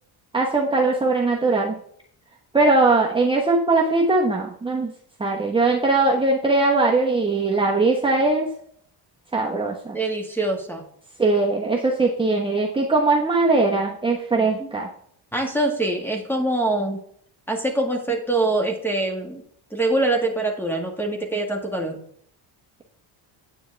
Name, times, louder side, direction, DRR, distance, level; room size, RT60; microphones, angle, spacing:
voice 1, 0.3-1.8 2.5-4.9 5.2-8.5 9.3-10.0 11.2-14.9, right 3 dB, 10° right, -1 dB, 1.1 m, -20 dB
voice 2, 9.9-10.8 14.4-14.7 15.3-17.0 17.5-19.4 19.7-22.0, right 2 dB, 5° left, 3 dB, 1.7 m, -24 dB
9.3 x 8.6 x 3.4 m, 0.65 s
cardioid pair, 125°, 47 cm